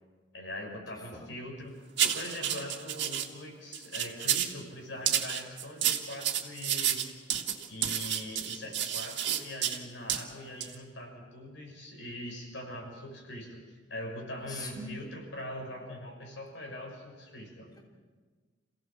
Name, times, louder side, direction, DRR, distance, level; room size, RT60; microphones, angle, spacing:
voice 1, 0.3-1.7 2.1-7.1 7.7-17.7, left 1 dB, 80° left, 2 dB, 6.0 m, -42 dB
voice 2, 0.9-1.3 14.4-14.9, left 2 dB, 20° left, -1 dB, 3.4 m, -43 dB
sound 1, 2.0-3.3 3.7-4.6 5.1-9.8 10.1-10.2 10.6-10.7, right 10 dB, 65° right, 2.0 m, -30 dB
27.5 x 17.0 x 7.4 m, 1.4 s
head